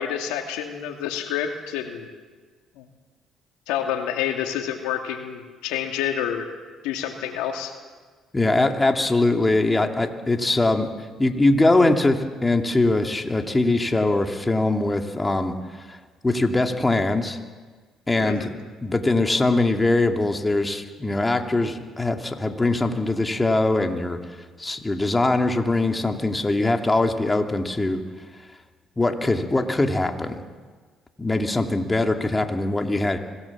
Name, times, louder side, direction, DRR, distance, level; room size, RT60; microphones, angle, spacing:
voice 1, 0.0-2.1 2.8-2.9 3.7-6.5 6.8-7.7 18.2-18.5, left 9 dB, 80° left, 4 dB, 2.4 m, -28 dB
voice 2, 8.3-10.9 11.2-15.5 15.9-16.0 16.2-17.4 18.1-18.5 18.8-24.2 24.6-28.0 29.0-30.4 31.2-33.2, left 2 dB, 20° left, 4 dB, 2.5 m, -22 dB
25.5 x 17.5 x 7.3 m, 1.4 s
hypercardioid pair, 60°, 0 cm